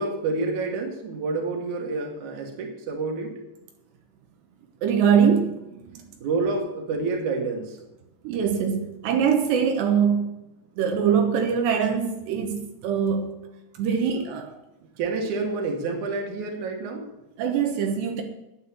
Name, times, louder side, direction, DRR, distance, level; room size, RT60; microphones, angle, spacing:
voice 1, 0.0-3.3 6.2-7.8 15.0-17.0, right 3 dB, 50° right, 2 dB, 3.0 m, -28 dB
voice 2, 4.8-6.0 8.2-10.3 10.8-13.4 13.8-14.5 17.4-18.2, right 7 dB, 80° right, 4 dB, 3.3 m, -23 dB
9.7 x 9.4 x 8.4 m, 0.92 s
omnidirectional pair, 5.0 m